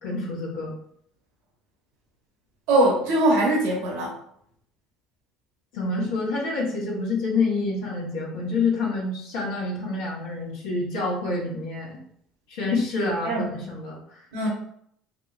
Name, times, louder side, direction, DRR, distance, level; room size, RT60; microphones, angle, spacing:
voice 1, 0.0-0.7 5.7-12.0 12.5-14.2, left 3 dB, 90° left, -5 dB, 1.0 m, -27 dB
voice 2, 2.7-4.2 13.0-13.5 14.3-14.5, right 1 dB, 80° right, -3 dB, 0.9 m, -22 dB
3.5 x 3.0 x 2.4 m, 0.67 s
supercardioid pair, 90°, 0 cm